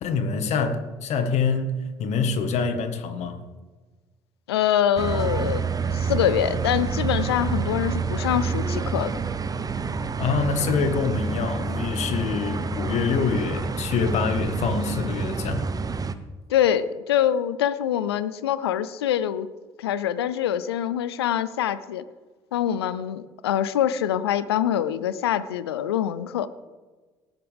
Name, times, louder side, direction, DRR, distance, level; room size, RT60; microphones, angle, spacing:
voice 1, 0.0-3.4 10.2-15.7, left 5 dB, 60° left, 8 dB, 1.6 m, -25 dB
voice 2, 4.5-5.6 5.9-9.1 16.5-19.5 19.8-22.0 22.5-26.5, left 10 dB, 90° left, 15 dB, 0.5 m, -24 dB
sound 1, 5.0-16.1, right 5 dB, 30° right, 0.9 m, -28 dB
18.0 x 8.0 x 3.5 m, 1.3 s
hypercardioid pair, 55°, 13 cm